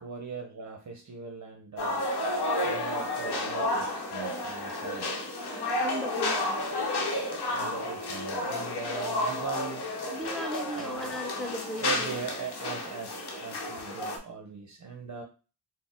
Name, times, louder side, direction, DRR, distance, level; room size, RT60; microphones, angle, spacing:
voice 1, 0.0-2.0 2.6-5.1 7.2-9.8 10.7-11.1 11.8-15.2, right 5 dB, 45° right, 2 dB, 0.7 m, -40 dB
sound 1, 1.8-14.2, left 1 dB, 70° left, 0.9 m, -31 dB
voice 2, 5.8-6.7 10.1-12.2, equal, ahead, 3 dB, 0.8 m, -37 dB
3.8 x 2.0 x 3.8 m, 0.33 s
cardioid pair, 70°, 41 cm